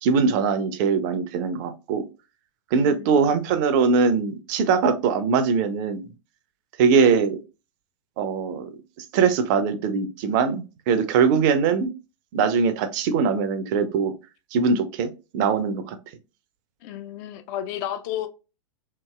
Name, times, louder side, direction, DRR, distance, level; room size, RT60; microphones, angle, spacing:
voice 1, 0.0-2.1 2.7-6.1 6.8-7.4 8.2-8.7 9.1-11.9 12.3-14.1 14.5-16.0, right 5 dB, 40° right, 0.4 m, -22 dB
voice 2, 2.7-3.4 16.8-18.3, left 11 dB, 35° left, 0.4 m, -33 dB
2.8 x 2.7 x 2.2 m
figure-of-eight pair, 95°, 16 cm